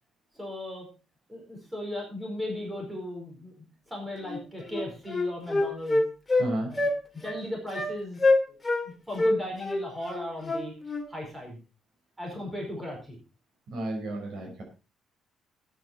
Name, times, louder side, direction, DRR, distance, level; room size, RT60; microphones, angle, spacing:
voice 1, 0.3-0.9 1.3-3.5 3.9-6.0 6.6-6.9 7.1-8.2 8.8-10.7 11.1-11.6 12.2-13.2, left 1 dB, 10° right, -1 dB, 4.7 m, -36 dB
Wind instrument woodwind instrument, 4.3-4.4 4.7-6.5 6.8-7.0 7.2-7.4 7.7-7.9 8.2-8.8 9.2-11.1, left 2 dB, 10° left, 2.1 m, -25 dB
voice 2, 6.4-6.7 13.7-14.6, right 1 dB, 60° right, 3 dB, 5.2 m, -32 dB
13.0 x 9.3 x 4.4 m, 0.33 s
cardioid pair, 170°, 0 cm